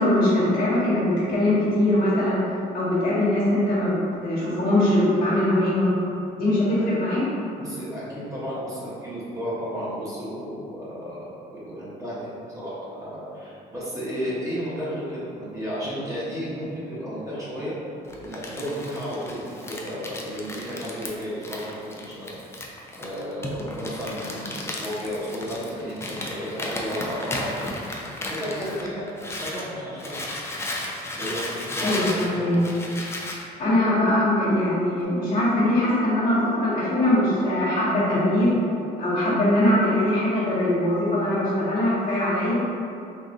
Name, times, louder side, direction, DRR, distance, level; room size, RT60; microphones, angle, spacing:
voice 1, 0.0-2.4 2.7-5.9 6.4-7.2 31.8-32.6 33.6-38.5 39.0-42.6, left 1 dB, 60° left, -9 dB, 1.2 m, -22 dB
voice 2, 7.6-17.8 18.1-22.6 23.0-27.6 28.2-30.2 31.2-32.4, equal, 20° right, -9 dB, 1.0 m, -33 dB
Crumpling crinkling, 18.1-29.7 30.0-33.4, left 1 dB, 15° left, 0.4 m, -34 dB
sound 1, 34.9-39.7 40.0-40.1, left 1 dB, 85° left, 0.7 m, -38 dB
3.6 x 2.4 x 2.6 m, 2.6 s
cardioid pair, 110°, 17 cm